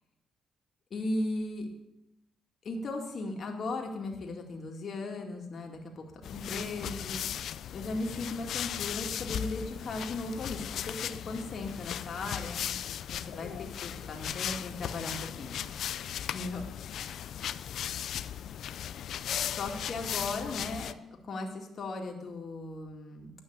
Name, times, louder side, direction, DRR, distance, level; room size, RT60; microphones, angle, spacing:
voice 1, 0.9-1.7 2.6-6.0 6.3-7.2 7.7-12.8 13.1-15.6 16.2-16.6 19.4-21.0 21.2-23.3, left 2 dB, 50° left, 2 dB, 2.1 m, -37 dB
sound 1, 6.2-20.9, left 10 dB, 70° left, 0.4 m, -37 dB
10.0 x 5.8 x 8.7 m, 0.87 s
cardioid pair, 90°, 0 cm